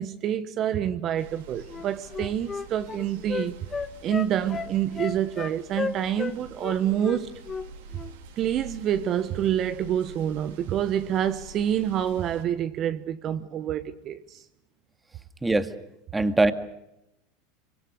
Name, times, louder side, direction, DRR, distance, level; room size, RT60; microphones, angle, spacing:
voice 1, 0.0-3.6 4.0-7.3 8.4-14.4, right 10 dB, 45° right, 1.2 m, -27 dB
sound 1, 1.2-12.4, right 3 dB, 75° right, 3.8 m, -47 dB
Wind instrument woodwind instrument, 1.7-6.3 6.6-7.7 7.9-8.1, left 5 dB, 25° left, 1.5 m, -33 dB
voice 2, 16.1-16.5, right 2 dB, 10° right, 2.0 m, -21 dB
25.5 x 24.5 x 6.5 m
hypercardioid pair, 95°, 0 cm